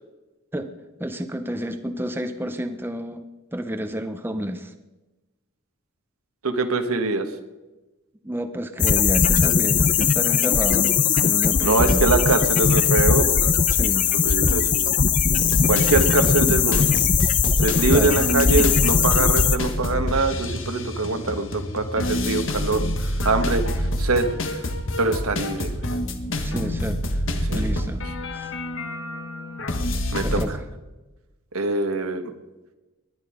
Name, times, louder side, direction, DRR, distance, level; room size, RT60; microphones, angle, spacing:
voice 1, 1.0-3.2 3.5-4.7 8.2-12.2 13.7-14.1 17.9-18.2 26.4-27.2 27.5-28.0 28.3-28.5 30.2-30.6, equal, 10° right, 7 dB, 0.7 m, -30 dB
voice 2, 6.4-7.3 11.6-13.6 14.1-14.9 15.7-16.9 17.6-24.3 24.5-24.6 25.0-25.7 27.5-27.6 30.1-30.5 31.5-32.3, right 3 dB, 85° right, 6 dB, 1.4 m, -23 dB
sound 1, 8.8-19.6, left 6 dB, 35° left, 0.6 m, -20 dB
sound 2, 15.4-30.5, left 1 dB, 65° left, 1.5 m, -27 dB
20.0 x 11.0 x 5.0 m, 1.1 s
head